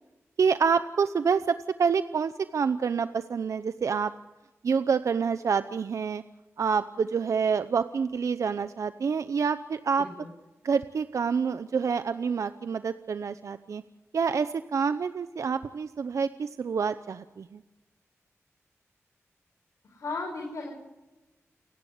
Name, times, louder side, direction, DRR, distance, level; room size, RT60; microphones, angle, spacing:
voice 1, 0.4-4.1 4.6-6.2 6.6-10.0 10.6-13.8 14.1-17.6, right 6 dB, 75° right, 12 dB, 0.8 m, -27 dB
voice 2, 10.0-10.3 19.8-20.7, left 3 dB, 75° left, -1 dB, 5.5 m, -36 dB
29.5 x 10.5 x 9.5 m, 1.1 s
cardioid pair, 55°, 5 cm